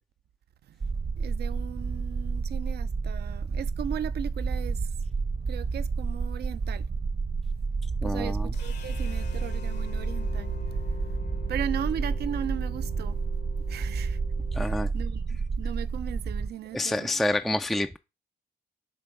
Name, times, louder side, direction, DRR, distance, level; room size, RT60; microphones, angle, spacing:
sound 1, 0.8-16.5, right 4 dB, 35° right, 0.8 m, -30 dB
voice 1, 1.2-4.9 5.5-6.9 8.0-10.5 11.5-13.2 13.7-14.2 14.6-15.2 15.6-17.1, right 10 dB, 65° right, 0.5 m, -37 dB
voice 2, 8.0-8.5 14.5-14.9 16.7-18.0, left 1 dB, ahead, 0.3 m, -28 dB
sound 2, 8.5-14.7, left 7 dB, 70° left, 1.2 m, -41 dB
7.2 x 3.5 x 4.5 m
supercardioid pair, 70°, 18 cm